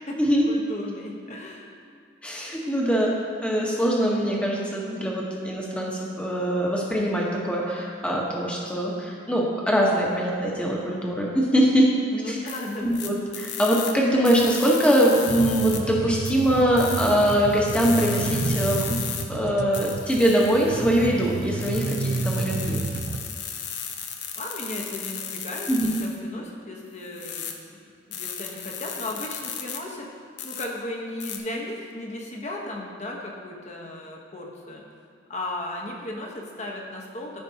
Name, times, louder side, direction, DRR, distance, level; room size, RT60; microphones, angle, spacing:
voice 1, 0.5-1.7 12.1-13.1 24.3-25.7 26.0-27.8 28.1-34.8 35.3-37.4, left 1 dB, 40° left, -1 dB, 1.1 m, -35 dB
voice 2, 2.2-3.1 3.4-11.9 12.3-12.4 12.8-19.0 19.3-22.8 25.7-26.0, equal, 5° left, -3 dB, 1.1 m, -22 dB
sound 1, 12.5-13.9 14.3-15.8 16.3-19.2 19.7-26.2 27.0-27.5 28.1-29.8 30.4-30.7 31.2-31.4, left 8 dB, 75° left, 0.7 m, -35 dB
sound 2, 15.3-23.3, right 3 dB, 60° right, 0.4 m, -31 dB
14.0 x 5.1 x 2.8 m, 2.4 s
head